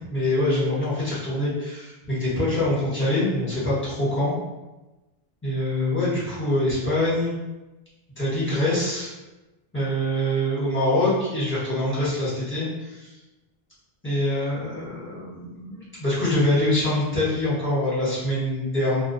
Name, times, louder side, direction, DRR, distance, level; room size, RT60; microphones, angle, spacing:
voice 1, 0.1-4.4 5.4-7.3 8.2-9.1 9.7-13.1 14.0-19.0, left 1 dB, 10° left, -9 dB, 1.0 m, -24 dB
2.3 x 2.2 x 2.6 m, 1.1 s
omnidirectional pair, 1.0 m